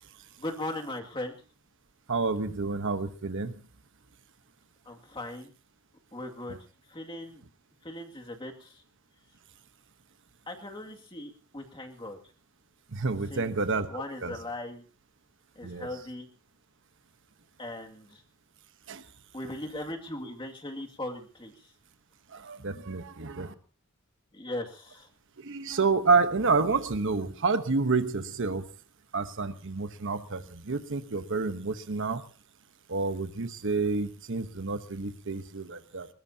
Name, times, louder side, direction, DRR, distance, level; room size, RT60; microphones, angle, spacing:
voice 1, 0.4-1.4 4.9-5.5 6.1-6.6 6.9-7.4 7.8-8.8 10.5-12.2 13.3-13.5 13.9-14.8 15.6-16.3 17.6-18.2 19.3-21.7 24.3-25.1, left 1 dB, 25° left, 2 dB, 2.3 m, -38 dB
voice 2, 2.1-3.5 6.5-6.6 12.9-14.4 15.6-15.9 18.9-19.0 22.3-23.5 25.4-28.6 29.1-32.2 32.9-36.1, right 4 dB, 60° right, 10 dB, 1.1 m, -29 dB
21.0 x 20.5 x 2.8 m, 0.35 s
head